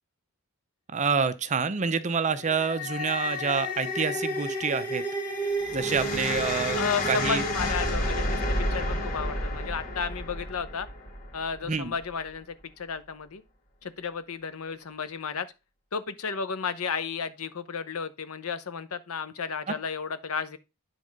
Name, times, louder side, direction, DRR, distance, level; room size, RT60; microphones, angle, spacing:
voice 1, 0.9-5.0 5.7-6.8 7.1-7.4 11.7-11.9, right 5 dB, 35° right, 0.6 m, -27 dB
sound 1, 2.3-11.6, left 1 dB, 40° left, 2.3 m, -30 dB
voice 2, 6.8-10.9 11.3-13.4 13.8-15.5 15.9-20.6, left 6 dB, 75° left, 0.8 m, -33 dB
9.6 x 3.6 x 5.2 m
head